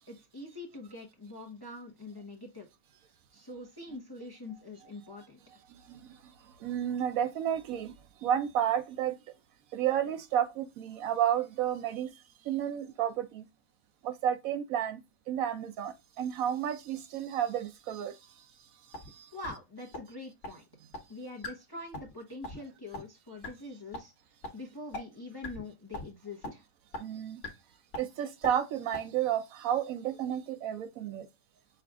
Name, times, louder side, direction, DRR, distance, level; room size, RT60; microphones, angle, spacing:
voice 1, 0.1-2.7 3.3-5.4 19.3-20.6 21.1-24.1 24.5-26.6, left 2 dB, 20° left, 0.7 m, -44 dB
voice 2, 5.7-6.2 6.6-7.9 8.2-9.2 9.7-12.1 12.4-13.4 14.0-15.0 15.3-18.2 19.1-19.3 27.0-27.4 28.0-31.3, right 10 dB, 75° right, 1.0 m, -31 dB
sound 1, 18.9-19.1 19.4-19.5 19.9-20.0 20.4-20.5 20.9-21.0 21.4-21.5 21.9-22.1 22.4-22.6 22.9-23.0 23.4-23.5 23.9-24.0 24.4-24.5 24.9-25.0 25.4-25.6 25.9-26.1 26.4-26.5 26.9-27.0 27.4-27.5 27.9-28.0 28.4-28.5 28.9-29.0, left 1 dB, 55° left, 1.5 m, -38 dB
5.8 x 2.3 x 3.5 m
omnidirectional pair, 1.5 m